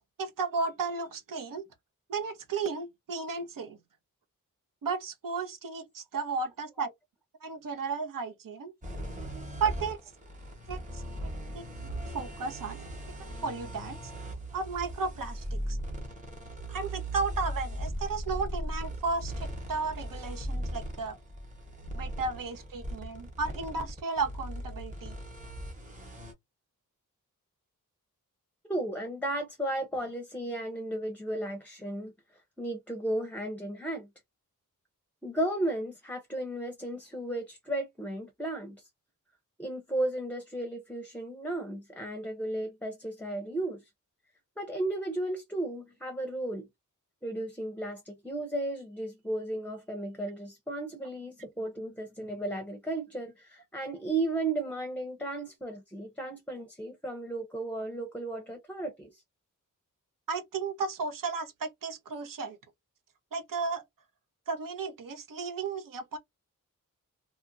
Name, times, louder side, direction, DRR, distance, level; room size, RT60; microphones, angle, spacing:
voice 1, 0.2-1.7 2.1-3.8 4.8-6.9 7.4-8.7 9.6-10.0 10.7-11.0 11.5-12.8 13.2-14.1 14.5-15.8 16.7-21.2 21.9-25.2 60.3-62.6 63.3-63.8 64.5-66.2, right 4 dB, 85° right, 1.0 m, -34 dB
sound 1, 8.8-26.3, equal, 25° right, 1.0 m, -38 dB
voice 2, 28.7-32.1 32.6-34.1 35.2-38.9 39.6-43.9 44.6-46.7 47.2-59.2, right 1 dB, 5° left, 0.6 m, -34 dB
2.9 x 2.5 x 2.5 m
wide cardioid pair, 180°, 32 cm